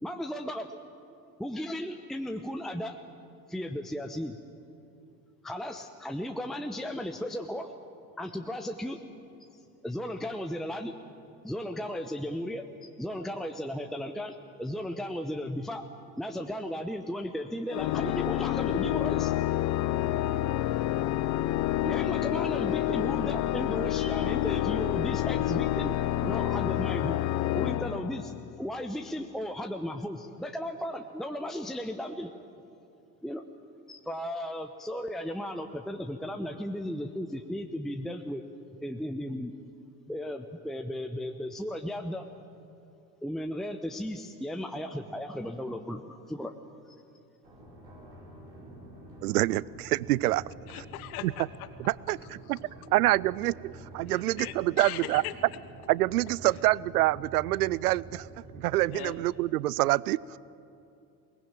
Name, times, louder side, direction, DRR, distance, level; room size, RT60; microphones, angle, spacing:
voice 1, 0.0-0.8 1.4-3.0 3.5-4.4 5.4-7.8 8.2-9.0 9.8-10.9 11.4-15.8 16.2-19.3 21.8-25.9 26.2-27.2 27.5-32.3 33.2-33.4 33.9-38.4 38.8-39.5 40.1-42.3 43.2-46.5 46.9-47.0, equal, ahead, 5 dB, 0.9 m, -35 dB
Organ, 17.7-28.6, left 13 dB, 35° left, 0.6 m, -28 dB
sound 1, 47.4-59.1, right 1 dB, 85° right, 6.6 m, -48 dB
voice 2, 49.2-50.4 50.7-50.8 51.2-51.3 51.9-55.2 55.9-58.3 58.5-60.4, right 17 dB, 65° right, 23 dB, 0.6 m, -26 dB
voice 3, 50.7-51.7 52.5-52.6 54.1-55.3 58.9-59.2, left 13 dB, 60° left, 10 dB, 1.4 m, -39 dB
21.5 x 20.0 x 9.1 m, 2.6 s
figure-of-eight pair, 70°, 49 cm